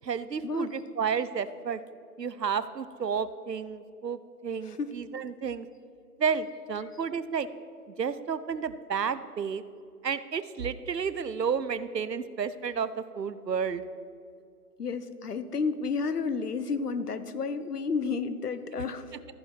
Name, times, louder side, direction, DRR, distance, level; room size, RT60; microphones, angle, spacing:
voice 1, 0.0-1.8 2.2-5.7 6.2-7.5 8.0-9.6 10.0-13.8, right 6 dB, 85° right, 14 dB, 0.7 m, -31 dB
voice 2, 14.8-19.0, left 5 dB, 70° left, 12 dB, 0.9 m, -31 dB
14.5 x 5.4 x 6.0 m, 2.4 s
figure-of-eight pair, 145°, 48 cm